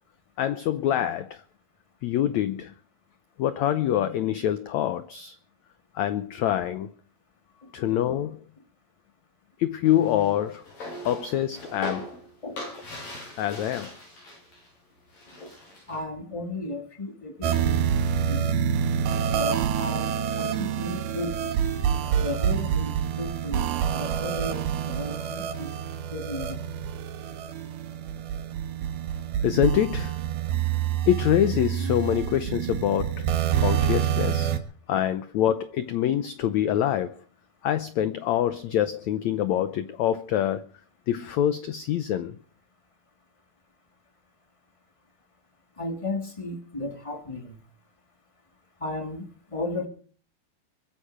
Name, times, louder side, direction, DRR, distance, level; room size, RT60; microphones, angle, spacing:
voice 1, 0.4-1.4 2.0-2.7 3.4-5.4 5.9-6.9 7.7-8.4 9.6-10.6 11.0-12.1 13.4-13.9 29.4-30.2 31.1-33.3 33.6-34.5 34.9-37.2 37.6-40.6 41.1-42.4, left 11 dB, 85° left, 1.6 m, -25 dB
sound 1, 9.8-14.7 15.0-16.0, left 1 dB, 65° left, 9.4 m, -40 dB
voice 2, 15.9-17.8 18.2-18.5 19.3-21.4 22.2-23.7 23.9-25.7 26.1-26.6 35.0-35.1 45.8-47.6 48.8-49.9, left 2 dB, 10° left, 2.0 m, -34 dB
sound 2, 17.4-34.6, right 8 dB, 90° right, 3.3 m, -27 dB
23.5 x 10.0 x 5.0 m
omnidirectional pair, 4.3 m